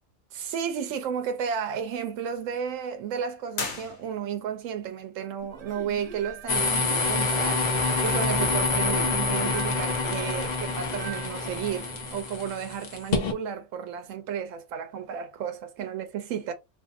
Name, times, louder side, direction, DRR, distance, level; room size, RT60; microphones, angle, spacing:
voice 1, 0.3-7.7 8.0-16.5, right 7 dB, 80° right, 1.0 m, -33 dB
sound 1, 3.5-4.6, left 4 dB, 65° left, 1.0 m, -35 dB
sound 2, 5.4-12.2, right 5 dB, 45° right, 0.5 m, -42 dB
sound 3, 6.5-13.3, left 3 dB, 50° left, 0.6 m, -27 dB
2.6 x 2.5 x 2.4 m
omnidirectional pair, 1.3 m